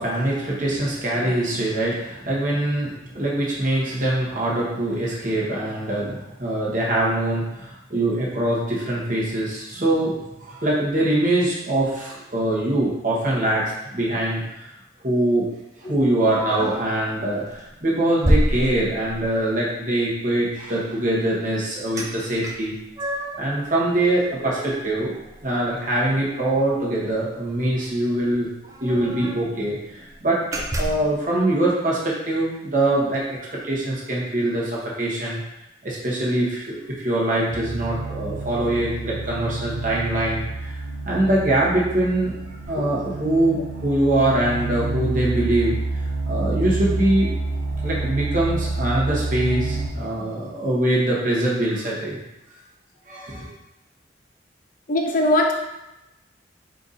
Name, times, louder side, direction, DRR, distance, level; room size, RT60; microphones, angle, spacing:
voice 1, 0.0-14.7 15.0-15.5 15.8-22.7 23.0-25.1 25.4-28.5 28.8-30.4 30.8-33.4 33.6-35.4 35.8-40.8 41.0-47.3 47.8-52.2 53.1-53.5, right 1 dB, 45° right, -5 dB, 1.2 m, -23 dB
sound 1, 16.2-17.0 17.5-17.7 18.2-19.4 22.0-22.1 22.4-23.5 23.9-25.7 26.0-26.1 26.5-26.7 27.8-27.9 28.1-28.2 28.6-29.5 29.9-30.1 30.5-31.1, equal, 20° right, 0.4 m, -27 dB
sound 2, 37.5-49.9, right 3 dB, 75° right, 0.9 m, -28 dB
voice 2, 54.9-55.5, left 1 dB, 50° left, 2 dB, 0.6 m, -20 dB
4.5 x 2.6 x 4.1 m, 0.96 s
head